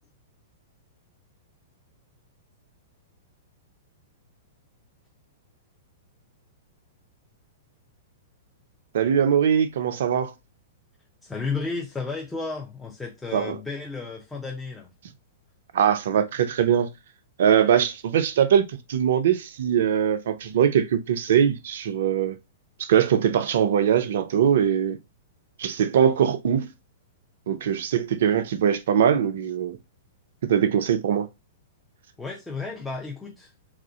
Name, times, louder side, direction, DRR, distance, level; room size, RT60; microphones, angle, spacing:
voice 1, 8.9-10.3 13.3-13.6 15.7-16.9 17.4-22.4 22.8-25.0 25.6-26.7 27.5-29.8 30.4-31.3, right 8 dB, 60° right, 0.5 m, -22 dB
voice 2, 11.2-14.9 32.2-33.5, left 4 dB, 10° left, 0.6 m, -33 dB
3.5 x 2.5 x 2.4 m
figure-of-eight pair, 105°, 0 cm